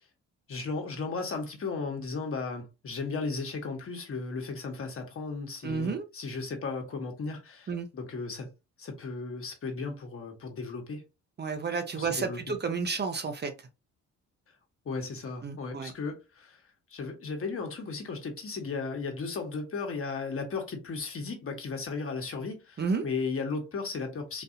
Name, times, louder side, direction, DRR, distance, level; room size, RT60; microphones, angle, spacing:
voice 1, 0.5-8.5 8.8-11.0 11.9-12.4 14.8-16.6 16.9-24.4, left 4 dB, 45° left, 1.2 m, -35 dB
voice 2, 5.6-6.0 7.7-7.9 11.4-13.5 15.4-15.9 22.8-23.1, right 5 dB, 35° right, 0.6 m, -31 dB
4.0 x 2.6 x 2.6 m
cardioid pair, 90°, 30 cm